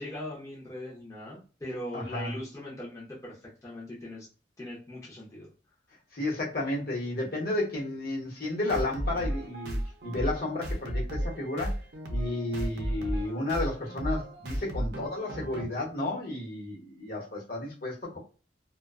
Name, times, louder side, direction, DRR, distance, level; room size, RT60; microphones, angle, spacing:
voice 1, 0.0-4.3 4.6-5.5 18.1-18.2, left 1 dB, 15° left, -6 dB, 0.6 m, -40 dB
voice 2, 1.9-2.3 6.1-9.8 10.0-11.8 12.1-18.2, left 2 dB, 55° left, -3 dB, 0.9 m, -32 dB
sound 1, 8.7-15.7, equal, 65° right, 0.5 m, -34 dB
2.4 x 2.2 x 2.4 m, 0.36 s
head